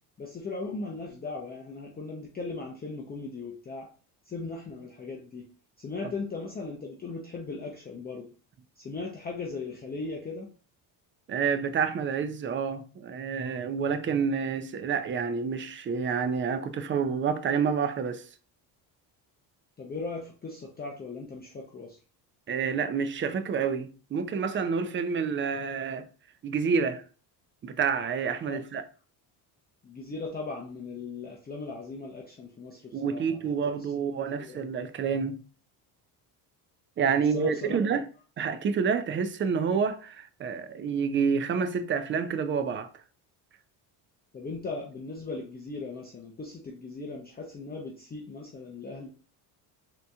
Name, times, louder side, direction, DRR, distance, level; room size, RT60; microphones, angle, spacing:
voice 1, 0.2-3.9 4.2-5.5 5.8-8.3 8.8-10.5 19.8-22.0 28.4-28.6 29.8-33.7 34.4-34.7 37.3-37.8 44.3-49.1, left 3 dB, 20° left, 0.6 m, -38 dB
voice 2, 11.3-18.3 22.5-26.1 26.4-27.0 27.6-28.8 32.9-35.4 37.0-38.0 38.4-42.9, right 6 dB, 25° right, 0.4 m, -28 dB
3.9 x 2.9 x 2.3 m
supercardioid pair, 90°, 47 cm